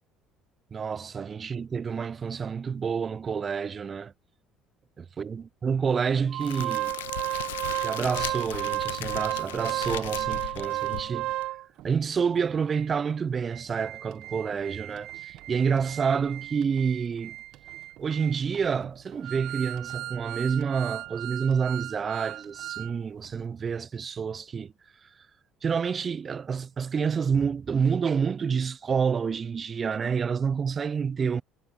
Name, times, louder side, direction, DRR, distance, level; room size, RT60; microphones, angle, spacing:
voice 1, 0.7-4.1 5.0-6.9 7.3-7.4 7.8-11.5 11.8-17.4 18.0-24.7 25.6-31.4, right 6 dB, 35° right, 0.5 m, -28 dB
Organ, 6.3-11.8 12.4-12.5 12.7-12.9 13.3-22.9 23.2-23.4, right 16 dB, 60° right, 1.4 m, -34 dB
Crackle, 6.4-11.5, left 15 dB, 80° left, 0.7 m, -38 dB
hypercardioid pair, 60°, 0 cm